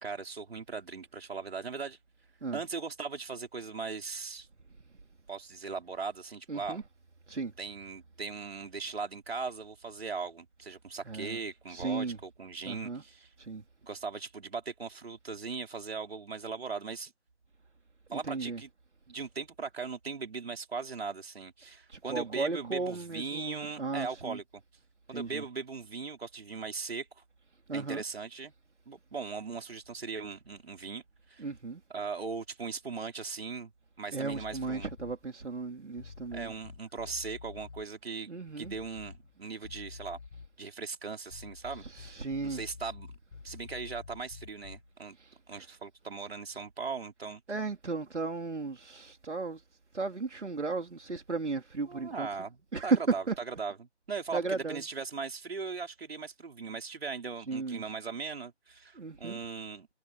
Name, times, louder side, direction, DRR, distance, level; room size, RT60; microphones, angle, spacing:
voice 1, 0.0-2.0 2.5-4.5 5.3-6.9 7.6-13.3 13.8-17.1 18.1-18.7 19.1-24.6 25.1-27.2 27.7-28.5 28.9-31.0 31.3-31.4 31.9-33.7 34.0-34.9 36.3-38.3 38.6-40.2 40.6-43.1 43.4-45.2 45.5-47.4 51.9-59.9, right 4 dB, 60° right, 4.3 m, -39 dB
voice 2, 6.5-6.8 7.3-7.5 11.0-11.4 11.7-12.2 12.6-13.0 13.4-13.6 18.1-18.6 21.9-24.4 25.1-25.5 27.7-28.0 31.4-31.8 34.1-36.5 38.3-38.7 41.7-42.6 45.2-45.7 47.5-49.6 49.9-52.3 52.7-53.3 54.3-54.9 57.4-57.8 58.9-59.4, right 4 dB, 80° right, 3.3 m, -35 dB
sound 1, 34.3-35.3 35.9-37.9 38.6-39.4 39.6-40.6 41.3-44.9, left 4 dB, 55° left, 2.1 m, -48 dB
figure-of-eight pair, 165°, 35 cm